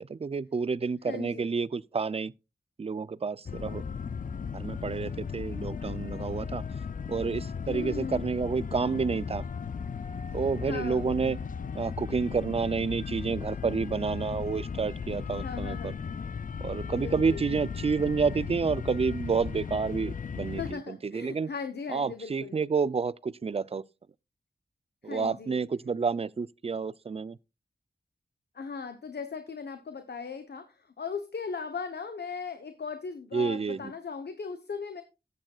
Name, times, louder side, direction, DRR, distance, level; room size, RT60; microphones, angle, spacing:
voice 1, 0.0-2.3 2.8-3.8 4.5-6.6 7.1-9.5 10.3-11.4 11.7-15.9 16.6-21.5 21.9-23.8 25.0-27.4 33.3-33.9, right 5 dB, 35° right, 0.4 m, -29 dB
voice 2, 1.1-1.5 7.7-8.3 10.6-11.1 15.4-16.0 17.0-17.4 20.6-22.6 25.0-25.6 28.5-35.0, left 5 dB, 85° left, 0.9 m, -38 dB
sound 1, 3.5-20.7, left 6 dB, 55° left, 0.4 m, -36 dB
13.5 x 8.9 x 2.3 m
wide cardioid pair, 70°, 17 cm